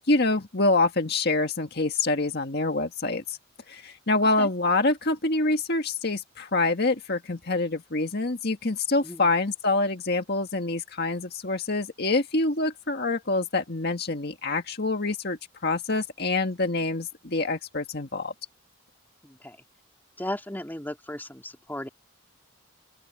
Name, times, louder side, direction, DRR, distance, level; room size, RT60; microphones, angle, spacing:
voice 1, 0.0-3.4 3.7-18.3, left 2 dB, 50° left, 1.8 m, -26 dB
voice 2, 19.2-19.6 20.2-21.9, left 1 dB, 10° left, 2.7 m, -36 dB
open air
head